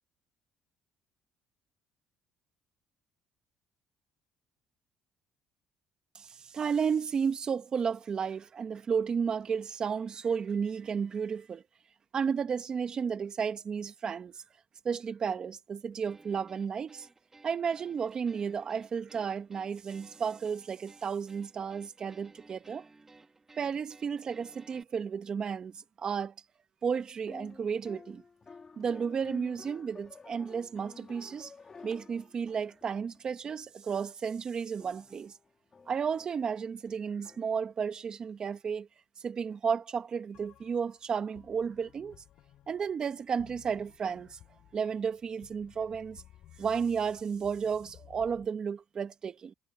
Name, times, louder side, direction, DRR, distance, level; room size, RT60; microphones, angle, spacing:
voice 1, 6.1-11.6 12.1-14.4 14.8-17.1 17.4-22.8 23.6-26.3 26.8-28.2 28.8-31.5 31.8-35.3 35.9-38.9 39.2-42.2 42.7-44.4 44.7-46.2 46.6-49.5, right 6 dB, 40° right, 1.7 m, -33 dB
sound 1, 16.0-24.8, right 3 dB, 20° right, 3.2 m, -58 dB
sound 2, 27.2-33.7 34.1-34.2 34.8-37.4, left 4 dB, 30° left, 3.2 m, -52 dB
sound 3, 40.3-48.5, left 12 dB, 70° left, 4.9 m, -57 dB
cardioid pair, 95°, 2 cm